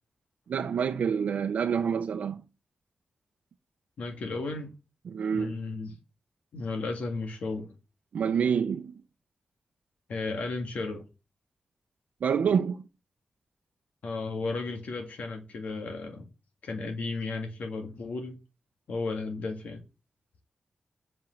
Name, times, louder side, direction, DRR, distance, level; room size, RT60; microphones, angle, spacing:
voice 1, 0.5-2.4 5.0-5.6 8.1-8.9 12.2-12.8, right 7 dB, 85° right, 0.7 m, -27 dB
voice 2, 4.0-4.8 5.3-6.0 6.5-7.7 10.1-11.0 14.0-16.3 16.6-18.4 18.9-19.8, left 3 dB, 80° left, 1.8 m, -34 dB
7.8 x 5.4 x 7.5 m
wide cardioid pair, 180°, 2 cm